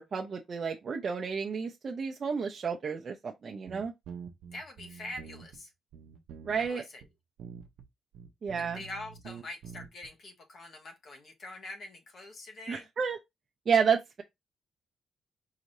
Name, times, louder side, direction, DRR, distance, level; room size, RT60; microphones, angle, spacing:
voice 1, 0.0-3.9 6.4-6.8 8.4-8.8 12.7-13.2 13.7-14.2, right 6 dB, 45° right, 0.6 m, -31 dB
sound 1, 3.7-5.6 5.9-6.7 7.0-7.1 7.4-7.9 8.1-10.1, right 7 dB, 85° right, 0.7 m, -46 dB
voice 2, 4.5-5.7 6.6-7.0 8.6-12.9, left 2 dB, 55° left, 1.2 m, -44 dB
4.8 x 3.1 x 2.7 m
cardioid pair, 105°, 0 cm